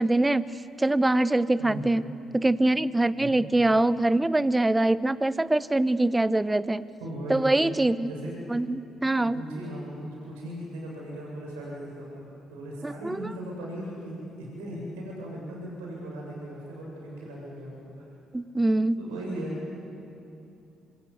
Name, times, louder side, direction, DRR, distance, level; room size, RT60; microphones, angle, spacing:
voice 1, 0.0-2.0 2.3-6.8 7.3-8.1 8.5-9.4 12.8-13.2 18.3-19.0, right 2 dB, 15° right, 16 dB, 1.0 m, -24 dB
voice 2, 1.6-1.9 3.2-3.4 7.0-7.5 8.1-8.3 9.3-17.7 19.0-19.5, right 1 dB, 80° right, -3 dB, 7.9 m, -38 dB
28.0 x 25.0 x 8.2 m, 2.7 s
hypercardioid pair, 50°, 0 cm